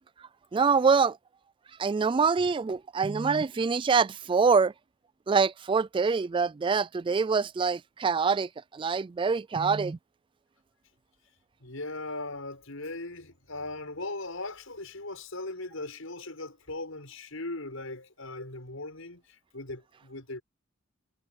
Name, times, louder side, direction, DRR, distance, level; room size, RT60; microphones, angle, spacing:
voice 1, 0.5-1.2 1.8-4.7 5.3-10.0, right 5 dB, 25° right, 0.3 m, -25 dB
voice 2, 11.6-20.4, left 2 dB, 80° left, 7.0 m, -39 dB
head